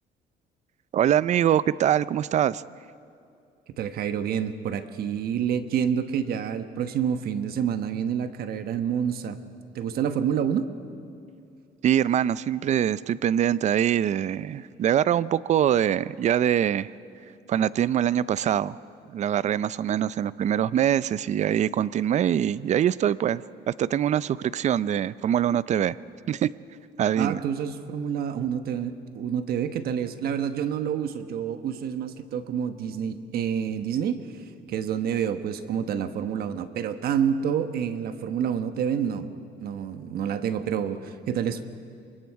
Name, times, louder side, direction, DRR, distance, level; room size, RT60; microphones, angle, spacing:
voice 1, 0.9-2.6 11.8-16.9 17.5-18.8 19.1-26.0 26.3-26.5 27.0-27.4, right 10 dB, 45° right, 18 dB, 0.5 m, -23 dB
voice 2, 3.8-9.4 9.7-10.7 27.2-34.3 34.7-39.3 39.6-41.6, right 8 dB, 65° right, 9 dB, 1.2 m, -28 dB
27.5 x 25.0 x 4.7 m, 2.5 s
cardioid pair, 110°, 17 cm